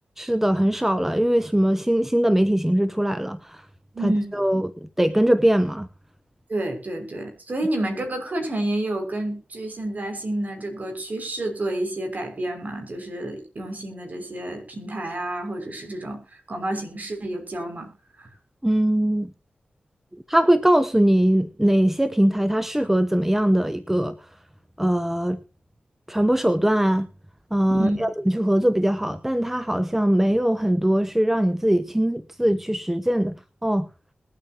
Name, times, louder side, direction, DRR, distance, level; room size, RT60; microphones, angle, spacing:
voice 1, 0.2-3.6 4.0-5.9 18.6-19.3 20.3-24.2 24.8-25.4 26.1-27.1 27.5-33.3 33.6-33.9, right 1 dB, 10° right, 0.9 m, -21 dB
voice 2, 6.5-16.2 16.5-17.9 18.2-18.3 27.7-28.0, right 1 dB, 50° right, 6.0 m, -29 dB
21.0 x 8.8 x 2.9 m
cardioid pair, 50°, 4 cm